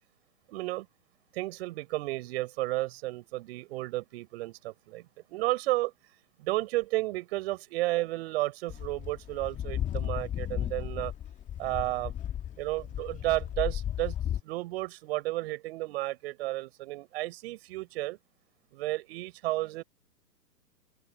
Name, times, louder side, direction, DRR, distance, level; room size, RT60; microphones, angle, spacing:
voice 1, 0.5-0.9 1.3-5.9 6.4-11.1 11.6-12.1 12.6-14.1 14.4-18.2 18.7-19.8, right 18 dB, 40° right, 6.3 m, -32 dB
sound 1, 8.7-14.4, left 10 dB, 15° left, 2.3 m, -34 dB
open air
figure-of-eight pair, 120°, 49 cm